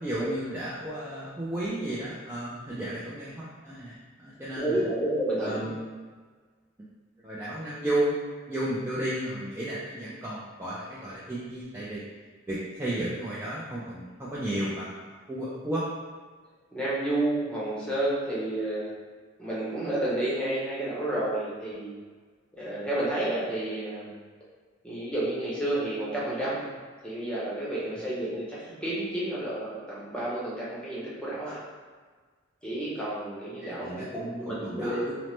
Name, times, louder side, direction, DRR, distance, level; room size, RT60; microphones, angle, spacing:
voice 1, 0.0-4.8 5.4-5.8 7.2-8.2 8.5-12.0 12.5-14.9 15.3-15.8 33.6-35.1, right 1 dB, 10° right, -9 dB, 0.3 m, -33 dB
voice 2, 4.6-5.7 16.7-18.9 19.4-22.0 22.5-24.1 24.8-26.6 27.0-31.6 32.6-35.1, right 1 dB, 5° left, -8 dB, 0.7 m, -30 dB
2.9 x 2.0 x 3.0 m, 1.5 s
head